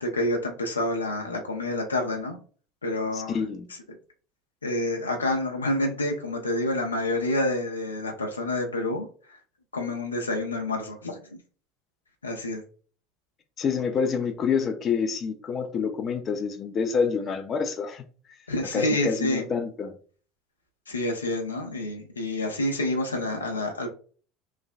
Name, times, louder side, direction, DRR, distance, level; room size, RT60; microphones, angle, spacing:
voice 1, 0.0-2.4 2.8-3.4 4.6-9.1 9.7-11.2 12.2-12.6 18.5-19.5 20.9-23.9, left 1 dB, 90° left, 0.6 m, -28 dB
voice 2, 3.1-3.7 13.6-18.0 18.7-19.9, left 5 dB, 35° left, 0.4 m, -27 dB
3.2 x 2.1 x 2.5 m
hypercardioid pair, 75°, 0 cm